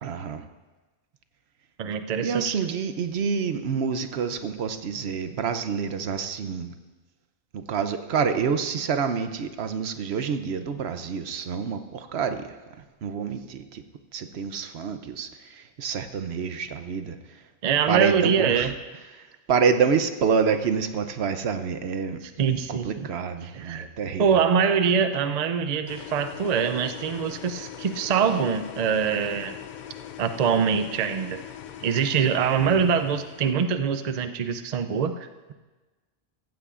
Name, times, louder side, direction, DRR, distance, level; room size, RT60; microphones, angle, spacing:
voice 1, 0.0-0.4 2.2-6.7 7.5-12.5 13.0-13.8 14.1-17.2 17.9-18.7 19.2-22.2 22.7-24.3 32.6-33.0, right 6 dB, 70° right, 9 dB, 1.0 m, -27 dB
voice 2, 1.8-2.6 17.6-18.7 22.4-23.1 23.4-23.9 24.2-29.6 30.2-31.4 31.8-35.5, right 6 dB, 45° right, 9 dB, 0.6 m, -24 dB
sound 1, 25.9-33.5, left 10 dB, 55° left, 0.5 m, -41 dB
15.0 x 15.0 x 2.5 m, 1.2 s
omnidirectional pair, 1.1 m